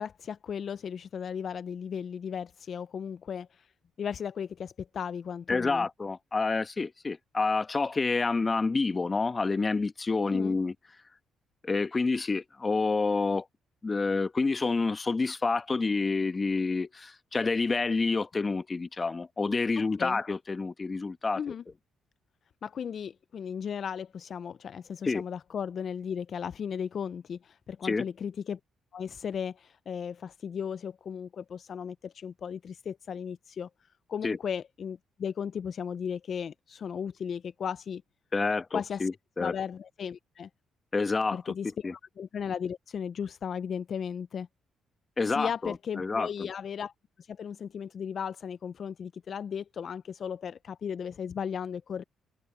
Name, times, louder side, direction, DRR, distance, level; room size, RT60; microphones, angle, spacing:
voice 1, 0.0-3.7 4.0-5.9 10.2-10.6 20.0-20.2 21.4-21.6 22.6-28.6 28.9-38.0 38.7-39.1 39.4-40.5 41.3-41.9 42.2-44.5 45.3-46.9 47.2-52.0, left 7 dB, 55° left, 0.4 m, -36 dB
voice 2, 5.5-10.7 11.6-13.4 13.8-21.4 25.0-25.2 27.8-28.0 34.2-34.4 38.3-39.5 40.9-41.5 41.8-41.9 45.2-46.5, left 3 dB, 30° left, 1.1 m, -28 dB
cardioid pair, 90°, 0 cm